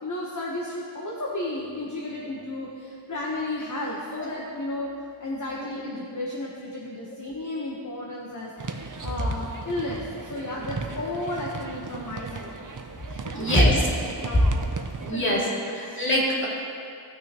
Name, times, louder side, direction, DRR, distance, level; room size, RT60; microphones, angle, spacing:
voice 1, 0.0-4.9 5.2-12.5 13.2-13.8 14.2-14.4 15.1-15.8, left 2 dB, 40° left, -3 dB, 1.2 m, -33 dB
sound 1, 8.6-15.1, right 4 dB, 45° right, 0.7 m, -37 dB
voice 2, 13.3-13.7 15.0-16.5, equal, 25° left, -6 dB, 2.5 m, -23 dB
18.0 x 6.2 x 3.0 m, 2.4 s
wide cardioid pair, 80°, 44 cm